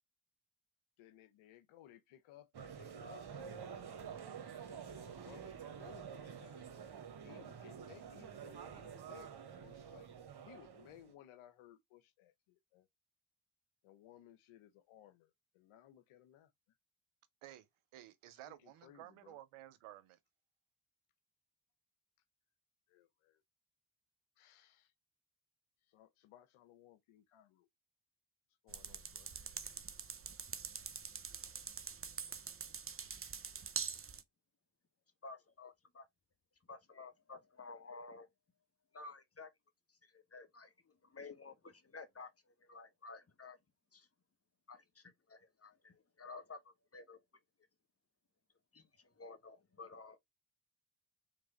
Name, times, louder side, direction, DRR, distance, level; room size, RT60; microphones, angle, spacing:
voice 1, 1.0-6.6 7.2-10.1 10.4-12.9 13.8-16.5 18.3-19.4 22.9-23.4 24.4-24.9 25.9-27.7 28.6-29.3, left 12 dB, 80° left, 0.8 m, -61 dB
sound 1, 2.5-11.1, right 7 dB, 50° right, 1.2 m, -49 dB
voice 2, 17.9-20.2, right 13 dB, 75° right, 0.8 m, -54 dB
sound 2, 28.7-34.2, right 6 dB, 25° right, 0.7 m, -45 dB
voice 3, 35.2-36.1 36.7-38.3 38.9-39.5 39.9-43.6 43.9-44.1 44.7-47.2 48.7-50.2, left 3 dB, 30° left, 1.3 m, -53 dB
3.8 x 3.3 x 3.9 m
hypercardioid pair, 40°, 49 cm